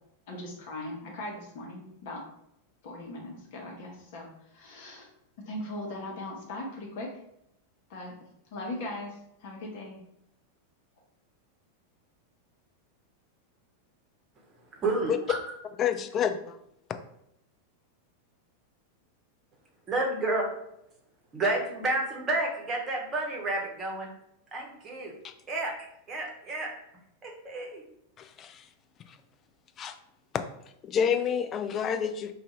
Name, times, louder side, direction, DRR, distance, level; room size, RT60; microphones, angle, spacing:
voice 1, 0.3-2.2 2.8-5.1 5.4-7.1 7.9-8.1 8.5-10.0, left 1 dB, 50° left, -1 dB, 1.0 m, -39 dB
voice 2, 14.7-15.1 19.9-20.5 21.3-24.1 24.5-25.1 25.5-25.7 26.1-26.7 27.2-27.8, right 2 dB, 25° right, -1 dB, 1.0 m, -30 dB
voice 3, 15.8-16.6 25.2-25.3 28.2-28.7 29.1-29.2 29.8-30.0 30.3-30.4 30.8-32.3, left 8 dB, 30° left, 8 dB, 0.3 m, -29 dB
2.7 x 2.4 x 4.1 m, 0.78 s
figure-of-eight pair, 90°, 0 cm